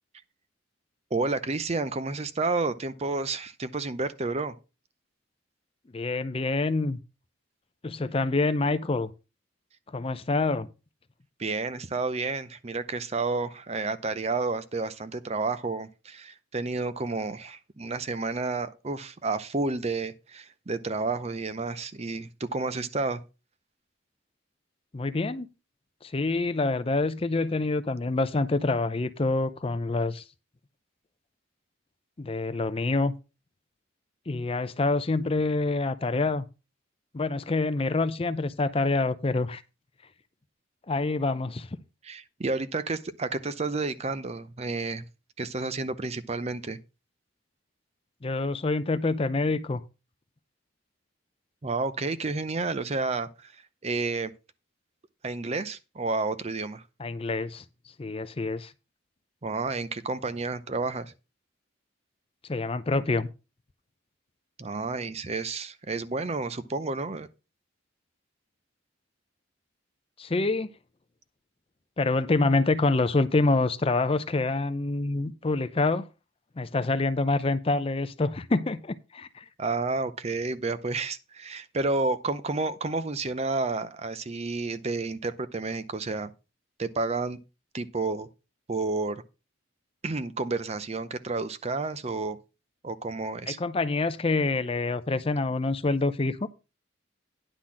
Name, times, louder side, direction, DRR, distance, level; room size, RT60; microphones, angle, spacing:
voice 1, 1.1-4.6 11.4-23.2 42.0-45.0 45.4-46.8 51.6-53.5 53.8-54.3 55.2-56.8 59.4-61.1 64.6-67.3 79.6-86.3 86.8-87.4 87.7-88.3 88.7-89.2 90.0-92.4 92.8-93.6, right 3 dB, 30° right, 0.6 m, -30 dB
voice 2, 5.9-7.0 7.8-9.1 9.9-10.7 24.9-25.5 26.0-30.2 32.2-33.1 34.3-36.5 37.1-39.6 40.9-41.7 48.2-49.8 57.0-57.6 58.0-58.7 62.5-63.3 70.2-70.7 72.0-76.1 76.6-79.5 93.5-96.5, left 3 dB, 30° left, 0.5 m, -26 dB
10.0 x 4.0 x 7.4 m
head